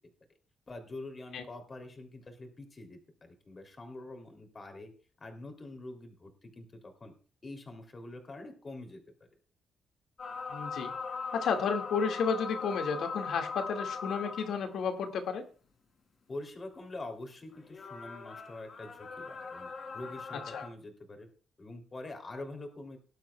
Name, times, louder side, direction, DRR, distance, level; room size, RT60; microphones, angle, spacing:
voice 1, 0.7-4.9 5.2-7.1 7.4-9.0 16.3-21.3 21.6-23.0, left 2 dB, 25° left, 4 dB, 3.1 m, -45 dB
sound 1, 10.2-14.7 17.6-20.7, left 5 dB, 40° left, 3.4 m, -40 dB
voice 2, 10.5-10.9 11.3-15.5 20.5-20.6, left 6 dB, 70° left, 4 dB, 2.1 m, -32 dB
19.0 x 11.5 x 2.4 m, 0.38 s
cardioid pair, 130°, 0 cm